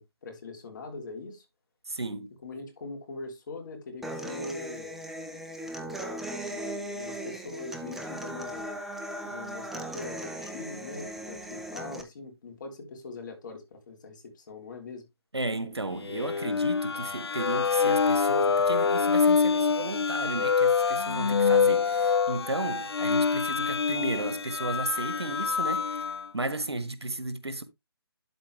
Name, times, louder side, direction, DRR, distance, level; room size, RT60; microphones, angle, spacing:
voice 1, 0.0-1.4 2.4-4.9 5.7-8.8 9.2-15.0, left 3 dB, 50° left, 3.2 m, -42 dB
voice 2, 1.9-2.3 15.3-26.0 26.3-27.6, right 2 dB, 85° right, 1.5 m, -34 dB
Human voice / Acoustic guitar, 4.0-12.0, right 1 dB, ahead, 0.7 m, -38 dB
sound 1, 16.0-26.3, left 5 dB, 75° left, 0.6 m, -25 dB
12.0 x 4.5 x 3.3 m
figure-of-eight pair, 145°, 13 cm